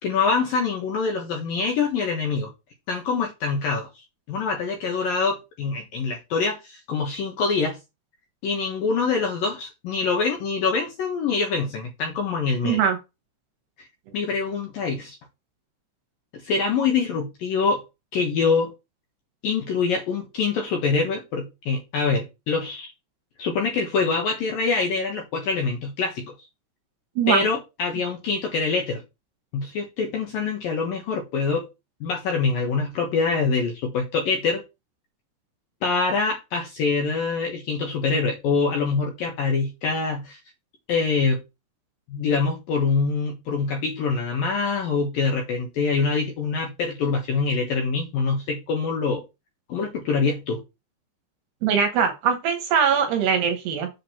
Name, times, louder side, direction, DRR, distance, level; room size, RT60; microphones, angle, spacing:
voice 1, 0.0-2.5 2.9-3.9 4.3-7.8 8.4-12.8 14.1-15.2 16.4-17.8 18.1-18.7 19.4-22.9 23.4-26.3 27.3-29.0 29.5-31.7 32.0-34.6 35.8-40.4 40.9-41.4 42.1-49.2 49.7-50.6, left 4 dB, 65° left, 2.4 m, -25 dB
voice 2, 12.6-13.0 27.2-27.4 51.6-53.9, right 7 dB, 70° right, 2.9 m, -21 dB
7.6 x 5.0 x 5.8 m
omnidirectional pair, 5.8 m